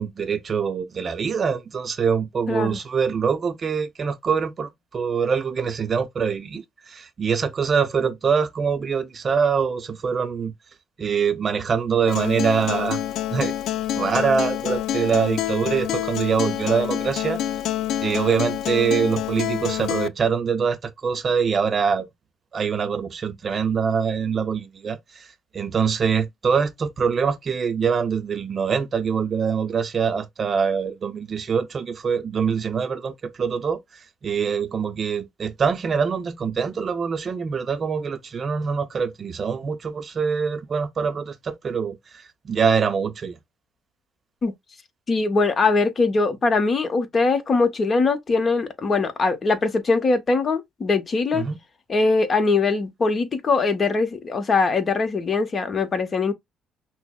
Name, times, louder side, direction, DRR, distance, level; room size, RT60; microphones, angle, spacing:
voice 1, 0.0-10.5 11.0-13.0 13.3-13.5 14.0-17.4 18.0-22.1 22.5-25.0 25.5-33.8 34.2-42.0 42.4-43.4 51.3-51.6, right 6 dB, 45° right, 0.6 m, -24 dB
voice 2, 2.5-2.8 44.4-44.5 45.1-51.4 51.9-56.3, left 3 dB, 40° left, 0.9 m, -21 dB
Acoustic guitar, 12.1-20.1, left 12 dB, 70° left, 0.3 m, -27 dB
5.8 x 2.1 x 2.2 m
supercardioid pair, 70°, 0 cm